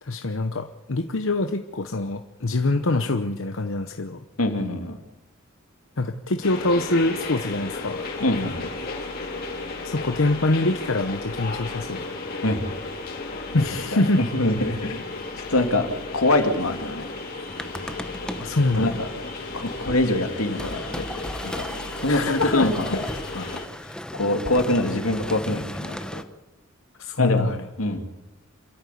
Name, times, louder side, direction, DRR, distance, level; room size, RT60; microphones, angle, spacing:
voice 1, 0.0-4.2 6.0-8.0 9.8-12.0 13.5-14.2 18.4-19.0 22.1-23.0 27.0-27.6, left 2 dB, 65° left, 7 dB, 1.0 m, -24 dB
voice 2, 4.4-5.0 8.2-8.7 12.4-12.6 13.5-13.6 13.9-15.1 15.5-15.9 16.1-17.1 18.7-19.1 19.5-21.0 21.4-21.6 22.0-22.9 23.3-23.4 23.8-26.2 27.2-27.5 27.8-28.0, left 2 dB, 85° left, 5 dB, 2.6 m, -24 dB
sound 1, 6.4-23.7, left 3 dB, 45° left, 4.2 m, -34 dB
sound 2, 17.5-26.2, left 1 dB, 5° left, 1.0 m, -36 dB
27.5 x 13.5 x 8.4 m, 1.0 s
head